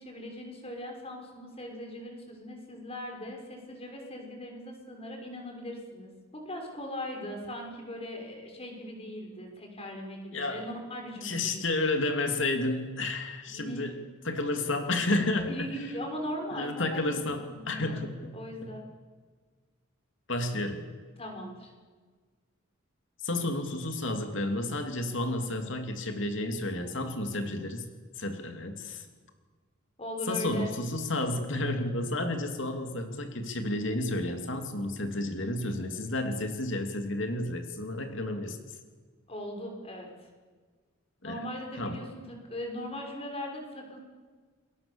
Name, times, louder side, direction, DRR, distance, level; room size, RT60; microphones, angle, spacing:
voice 1, 0.0-11.7 13.5-13.9 15.5-18.0 18.3-18.8 21.2-21.7 30.0-30.7 39.3-40.3 41.2-44.0, left 1 dB, 30° left, 2 dB, 6.1 m, -39 dB
voice 2, 10.3-10.7 11.2-13.9 14.2-15.7 16.5-18.4 20.3-20.9 23.2-27.9 28.2-29.0 30.3-38.6 41.2-41.4 41.8-42.0, left 2 dB, 65° left, 5 dB, 2.8 m, -31 dB
29.5 x 22.5 x 7.2 m, 1.5 s
head